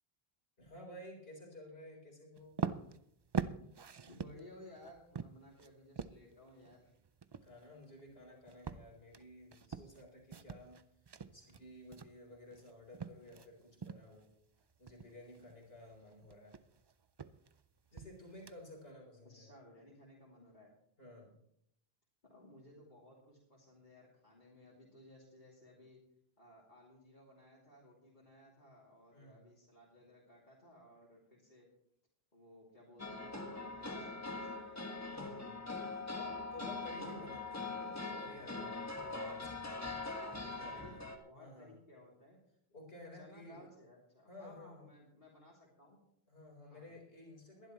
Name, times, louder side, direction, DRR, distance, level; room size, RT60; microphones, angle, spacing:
voice 1, 0.6-2.6 7.4-10.8 11.3-14.3 14.8-16.6 17.9-19.5 21.0-21.4 29.1-29.5 35.1-39.6 40.3-40.4 40.6-41.0 41.4-41.7 42.7-43.7 44.3-44.9 46.3-47.7, left 1 dB, 70° left, 0 dB, 4.4 m, -54 dB
sound 1, 2.4-13.5 13.8-14.2 14.6-18.9, right 6 dB, 45° right, 0.3 m, -44 dB
voice 2, 4.1-6.9 19.2-20.7 22.2-26.0 26.4-31.7 32.3-34.8 40.4-41.0 41.2-42.4 43.1-46.0 46.7-46.9, left 1 dB, 50° left, -6 dB, 3.1 m, -58 dB
sound 2, 33.0-41.2, left 3 dB, 15° left, 1.4 m, -42 dB
21.5 x 11.5 x 3.1 m, 0.73 s
omnidirectional pair, 1.0 m